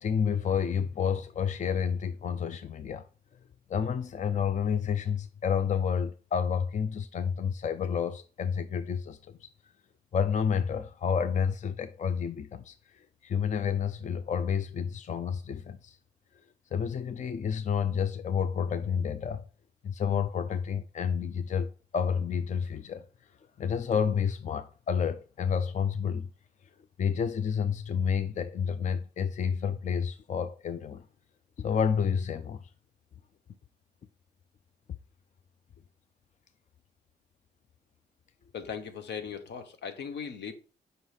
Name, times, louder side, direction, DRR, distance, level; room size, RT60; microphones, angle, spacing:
voice 1, 0.0-3.0 3.7-9.5 10.1-16.0 16.7-19.5 19.8-23.1 23.6-26.3 27.0-31.0 31.6-32.6, left 7 dB, 40° left, 0.5 m, -30 dB
voice 2, 38.5-40.5, left 7 dB, 70° left, 1.0 m, -38 dB
5.5 x 4.0 x 4.7 m
cardioid pair, 65°, 18 cm